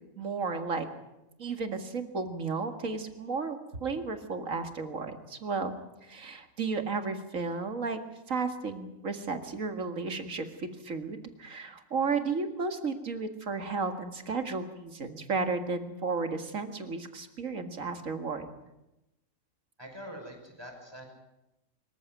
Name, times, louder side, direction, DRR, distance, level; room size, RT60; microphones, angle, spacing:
voice 1, 0.2-0.9 1.4-5.7 6.0-8.0 8.3-18.5, right 4 dB, 80° right, 7 dB, 2.4 m, -33 dB
voice 2, 19.8-21.1, equal, 20° right, 2 dB, 5.7 m, -44 dB
24.5 x 14.5 x 9.3 m, 0.93 s
omnidirectional pair, 1.4 m